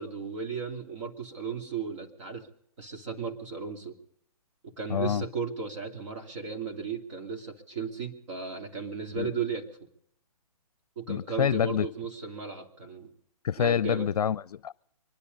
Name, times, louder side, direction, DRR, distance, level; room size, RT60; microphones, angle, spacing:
voice 1, 0.0-2.5 2.8-3.9 4.8-9.6 11.0-13.1 13.6-14.1, right 5 dB, 55° right, 2.9 m, -35 dB
voice 2, 4.9-5.2 9.2-9.3 11.1-11.9 13.4-14.7, left 8 dB, 70° left, 0.5 m, -27 dB
24.5 x 10.5 x 5.4 m
hypercardioid pair, 155°, 19 cm